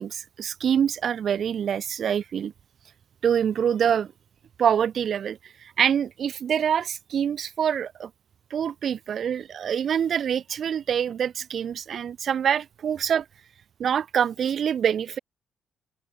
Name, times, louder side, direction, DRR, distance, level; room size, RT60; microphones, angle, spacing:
voice 1, 0.0-2.5 3.2-4.1 4.6-8.1 8.5-13.3 13.8-15.2, right 8 dB, 60° right, 2.7 m, -25 dB
open air
cardioid pair, 90°, 0 cm